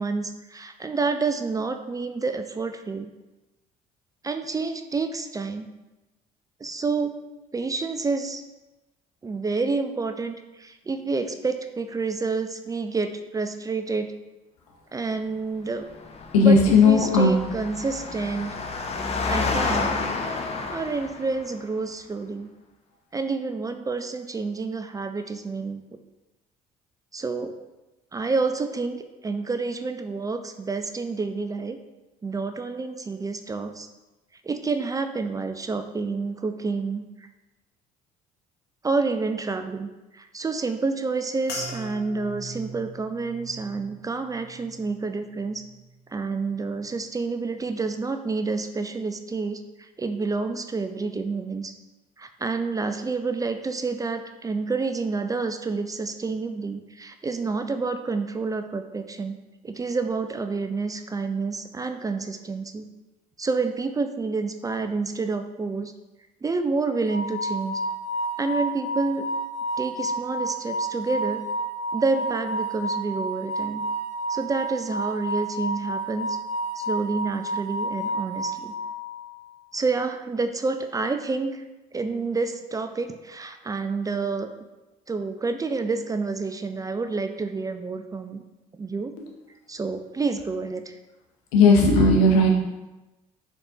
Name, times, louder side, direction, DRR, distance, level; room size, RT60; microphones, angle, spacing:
voice 1, 0.0-3.1 4.2-5.7 6.6-7.2 7.5-8.4 9.2-14.1 14.9-15.9 16.4-16.6 16.8-18.6 19.3-20.0 20.7-22.5 23.1-25.8 27.1-27.6 28.1-31.8 32.2-33.9 34.4-37.3 38.8-45.6 46.1-51.7 52.2-59.4 59.6-62.9 63.4-65.9 66.4-67.8 68.4-69.3 69.8-71.5 71.9-73.8 74.3-76.4 76.8-78.7 79.7-81.6 81.9-84.5 85.1-88.4 88.7-89.2 89.7-91.0, right 4 dB, 20° right, 8 dB, 0.3 m, -28 dB
Engine, 15.9-21.5, left 4 dB, 35° left, 0.6 m, -30 dB
voice 2, 16.3-17.3 91.5-92.5, left 3 dB, 80° left, 2 dB, 0.7 m, -16 dB
sound 1, 41.5-46.0 46.4-47.0 47.6-47.8, right 1 dB, 60° left, 0.9 m, -41 dB
sound 2, 67.1-79.3, right 1 dB, 50° right, 0.7 m, -30 dB
3.9 x 3.5 x 2.8 m, 1.0 s
hypercardioid pair, 60°, 19 cm